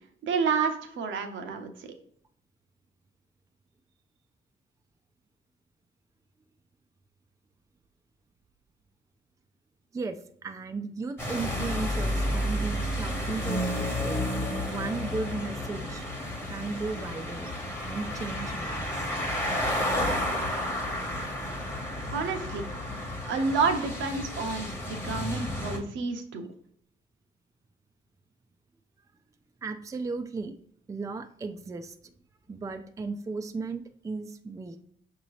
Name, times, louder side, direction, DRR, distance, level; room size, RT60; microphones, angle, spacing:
voice 1, 0.2-1.9 22.1-22.6 23.2-26.5, right 5 dB, 75° right, 5 dB, 0.8 m, -29 dB
voice 2, 9.9-14.2 14.7-16.1 16.5-17.5 17.8-19.1 29.6-30.5 30.9-32.0 32.5-34.8, right 3 dB, 15° right, 7 dB, 0.4 m, -35 dB
sound 1, 11.2-25.8, left 1 dB, 10° left, 1.1 m, -31 dB
5.9 x 2.8 x 3.1 m, 0.65 s
cardioid pair, 90°, 20 cm